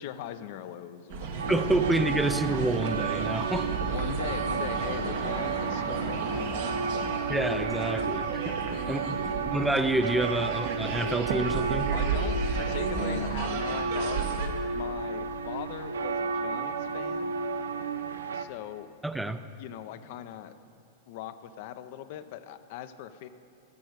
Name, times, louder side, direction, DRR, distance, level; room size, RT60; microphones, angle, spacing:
voice 1, 0.0-1.6 3.8-7.1 8.7-9.3 11.9-17.3 18.3-18.9 19.6-20.5 21.1-23.3, left 10 dB, 55° left, 11 dB, 0.6 m, -40 dB
sound 1, 1.1-14.5, right 4 dB, 65° right, 1.2 m, -33 dB
sound 2, 1.4-18.4, right 5 dB, 80° right, 0.5 m, -32 dB
voice 2, 1.5-3.7 7.3-8.6 8.9-9.2 9.4-11.9 19.0-19.4, right 1 dB, 5° right, 11 dB, 0.5 m, -28 dB
13.5 x 6.2 x 6.6 m, 2.6 s
hypercardioid pair, 100°, 0 cm